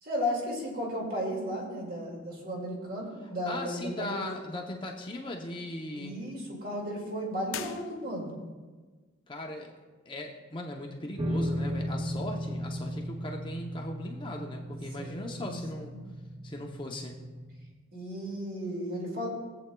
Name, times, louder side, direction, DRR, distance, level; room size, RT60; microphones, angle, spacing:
voice 1, 0.0-4.2 6.0-8.3 15.0-15.6 15.9-16.0 17.9-19.3, equal, 45° right, -2 dB, 2.1 m, -34 dB
voice 2, 3.2-6.2 9.3-9.7 10.1-15.9 16.4-17.2, left 1 dB, 25° left, 1 dB, 0.7 m, -38 dB
sound 1, 7.5-8.5, left 10 dB, 70° left, 0.5 m, -42 dB
sound 2, 11.2-17.7, equal, 25° right, 0.5 m, -36 dB
19.5 x 7.8 x 2.2 m, 1.4 s
head